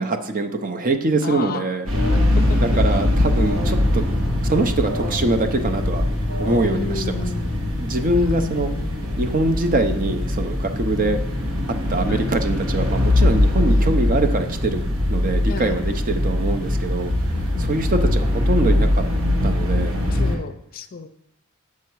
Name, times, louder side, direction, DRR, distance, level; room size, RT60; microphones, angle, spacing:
voice 1, 0.0-1.8 2.6-4.0 4.4-6.0 6.4-7.2 7.8-8.7 9.2-11.2 11.9-14.8 15.1-17.1 17.6-19.0 19.4-20.0, right 2 dB, 40° right, 7 dB, 0.6 m, -23 dB
voice 2, 1.2-1.7 2.2-2.7 6.7-7.5 8.1-9.2 11.0-11.2 12.1-12.3 13.7-13.9 15.5-16.2 17.5-17.9 20.1-21.1, left 4 dB, 45° left, 9 dB, 0.5 m, -33 dB
Alarm, 1.8-7.7, left 1 dB, 65° right, 1.4 m, -30 dB
sound 1, 1.9-20.4, left 1 dB, 85° right, 1.5 m, -22 dB
7.4 x 5.8 x 4.6 m, 0.79 s
head